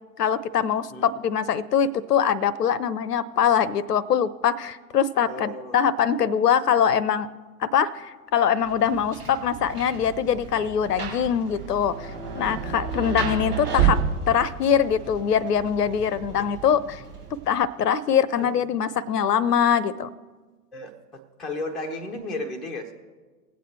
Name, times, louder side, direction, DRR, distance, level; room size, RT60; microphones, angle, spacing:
voice 1, 0.2-7.3 7.6-14.0 14.3-17.0 17.3-20.1, left 8 dB, 75° left, 20 dB, 0.6 m, -23 dB
voice 2, 5.3-5.8 13.0-13.2 18.4-18.5 20.7-22.9, left 2 dB, ahead, -1 dB, 0.5 m, -34 dB
Rain, 8.6-17.6, right 7 dB, 75° right, 4.3 m, -31 dB
20.0 x 8.1 x 3.2 m, 1.4 s
figure-of-eight pair, 100°, 47 cm